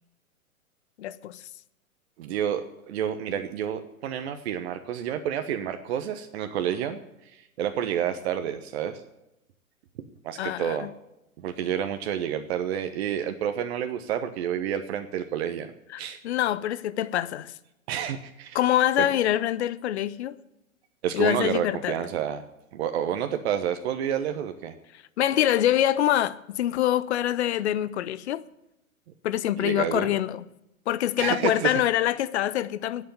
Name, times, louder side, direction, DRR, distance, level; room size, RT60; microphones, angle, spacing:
voice 1, 1.0-1.5 10.4-10.9 15.9-17.5 18.5-20.4 21.1-22.0 25.2-28.4 29.2-30.4 30.9-33.0, left 12 dB, 50° left, 0.9 m, -25 dB
voice 2, 2.2-7.0 7.3-9.0 10.2-10.9 11.4-15.7 16.0-16.2 17.9-18.6 19.0-19.1 21.0-22.4 22.7-24.7 29.6-30.1 31.2-31.7, right 9 dB, 50° right, 1.2 m, -29 dB
11.5 x 8.6 x 9.2 m
figure-of-eight pair, 115°, 41 cm